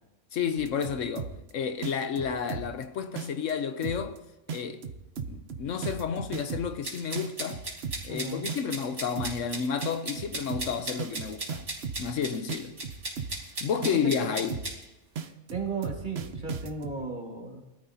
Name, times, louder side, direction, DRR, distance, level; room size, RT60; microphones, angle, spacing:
voice 1, 0.3-4.2 4.5-4.8 5.3-7.6 8.0-11.6 12.0-12.7 13.3-14.6, left 7 dB, 70° left, 1.0 m, -31 dB
sound 1, 0.6-1.5 1.8-2.8 3.2-3.5 3.8-4.2 4.5-6.8 7.2-8.2 8.5-8.8 9.2-9.5 9.8-12.2 12.5-13.5 13.8-14.2 14.5-14.8 15.2-17.0, right 6 dB, 55° right, 0.9 m, -36 dB
sound 2, 6.8-14.7, right 2 dB, 75° right, 3.4 m, -37 dB
voice 2, 8.1-8.5 14.2-14.3 15.2-17.6, right 4 dB, 35° right, 1.9 m, -35 dB
22.0 x 13.0 x 2.7 m
omnidirectional pair, 1.4 m